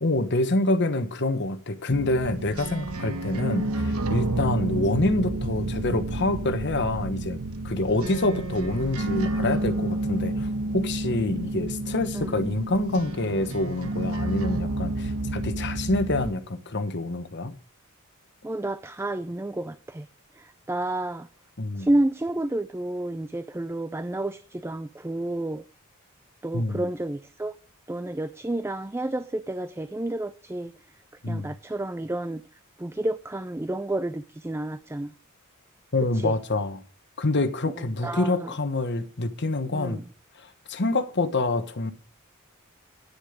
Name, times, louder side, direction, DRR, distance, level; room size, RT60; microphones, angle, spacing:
voice 1, 0.0-7.4 7.6-10.5 10.7-17.5 21.6-21.9 26.5-26.9 31.2-31.5 35.9-36.8 37.2-40.0 40.4-41.9, left 2 dB, 55° left, 1.2 m, -26 dB
sound 1, 1.9-16.3, right 2 dB, 85° right, 1.2 m, -30 dB
voice 2, 18.4-20.1 20.4-21.3 21.8-25.6 26.4-27.5 27.9-30.7 31.3-32.4 32.8-35.1 36.1-36.4 37.6-38.5 39.7-40.0, right 1 dB, 10° right, 0.4 m, -30 dB
10.0 x 9.7 x 5.1 m
head